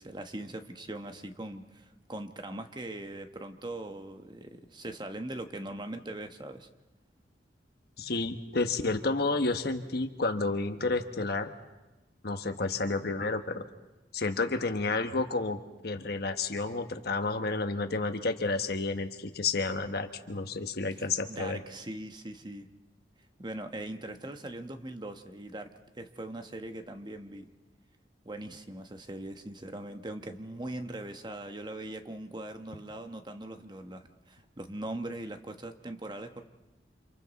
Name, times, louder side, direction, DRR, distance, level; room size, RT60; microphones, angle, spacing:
voice 1, 0.0-6.7 21.0-22.7 23.4-27.5 28.2-36.4, right 1 dB, 25° right, 6 dB, 1.1 m, -41 dB
voice 2, 8.0-11.5 12.2-13.7 14.1-15.6 15.8-21.6, left 3 dB, 60° left, 7 dB, 1.3 m, -30 dB
29.5 x 27.0 x 4.1 m, 1.1 s
head